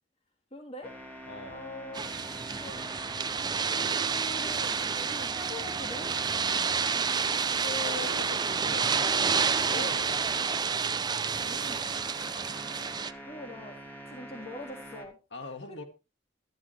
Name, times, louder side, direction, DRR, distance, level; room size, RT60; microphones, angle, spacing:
voice 1, 0.5-1.0 1.5-2.1 2.6-2.8 3.3-6.1 9.7-10.0 11.4-12.0 13.3-13.8 14.1-15.2 15.7-15.8, left 1 dB, 35° left, 0 dB, 2.9 m, -44 dB
sound 1, 0.8-10.7 11.0-15.1, equal, 10° left, 2.5 m, -45 dB
voice 2, 1.2-1.6 7.5-9.2 9.7-10.2 12.4-12.6 15.3-15.8, left 3 dB, 75° left, 7 dB, 1.7 m, -41 dB
sound 2, 1.9-13.1, right 6 dB, 25° right, 0.5 m, -29 dB
13.0 x 11.0 x 3.3 m, 0.29 s
head